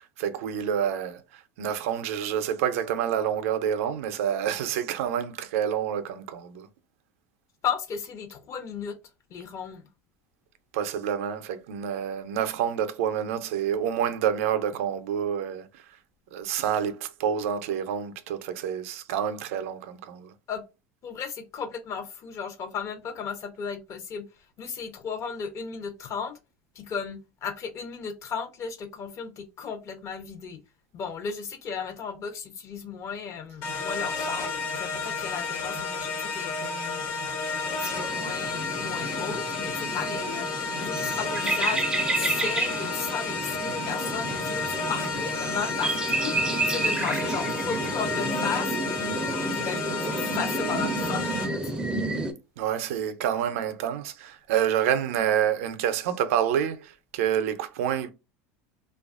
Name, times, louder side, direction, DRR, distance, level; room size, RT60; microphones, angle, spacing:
voice 1, 0.0-6.7 10.7-15.8 16.3-20.3 52.6-58.1, right 9 dB, 80° right, 0.4 m, -28 dB
voice 2, 7.6-9.0 9.3-9.8 20.5-20.6 21.0-24.2 24.6-26.4 26.8-30.6 30.9-37.1 37.6-48.8 49.5-51.8, left 6 dB, 45° left, 0.6 m, -35 dB
sound 1, 33.6-51.5, left 4 dB, 65° left, 1.2 m, -31 dB
sound 2, 37.8-52.3, right 2 dB, 10° right, 0.4 m, -31 dB
2.6 x 2.3 x 2.4 m
supercardioid pair, 105°, 7 cm